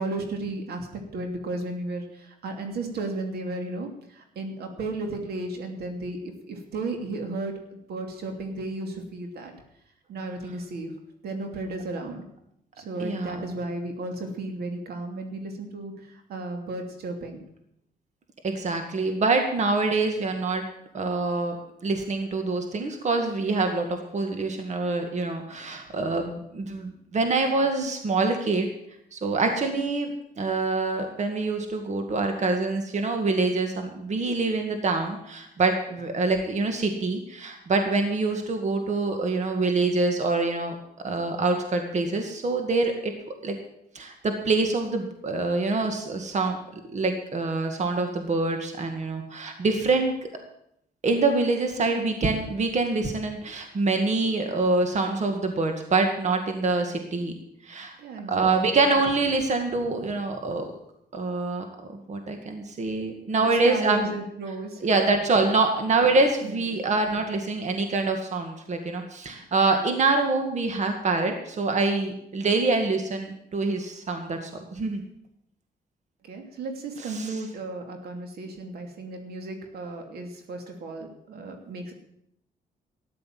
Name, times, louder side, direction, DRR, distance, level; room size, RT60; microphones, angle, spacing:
voice 1, 0.0-6.2 6.5-9.5 10.1-10.9 11.2-12.2 12.8-17.4 58.0-58.7 63.4-64.9 66.4-66.7 76.2-81.9, right 2 dB, 75° right, 4 dB, 2.8 m, -34 dB
voice 2, 13.0-13.4 18.4-20.6 20.9-21.6 21.8-28.7 29.1-30.1 30.4-40.8 41.0-43.1 43.4-43.5 44.0-46.6 46.9-50.1 51.0-57.3 57.7-58.0 58.3-60.7 61.1-61.6 62.1-64.0 64.8-75.0 77.1-77.3, right 3 dB, 45° right, 5 dB, 1.9 m, -25 dB
13.5 x 10.5 x 7.5 m, 0.77 s
cardioid pair, 95°, 16 cm